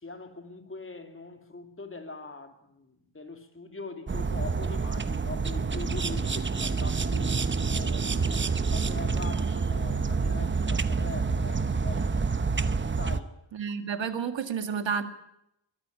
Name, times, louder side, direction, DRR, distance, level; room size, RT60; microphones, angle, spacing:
voice 1, 0.0-7.3 7.7-12.1 13.0-13.4, left 3 dB, 25° left, 2.6 m, -42 dB
sound 1, 4.1-13.2, right 4 dB, 25° right, 0.9 m, -28 dB
voice 2, 13.5-15.0, right 6 dB, 75° right, 2.1 m, -30 dB
22.0 x 13.5 x 9.7 m
wide cardioid pair, 130°, 46 cm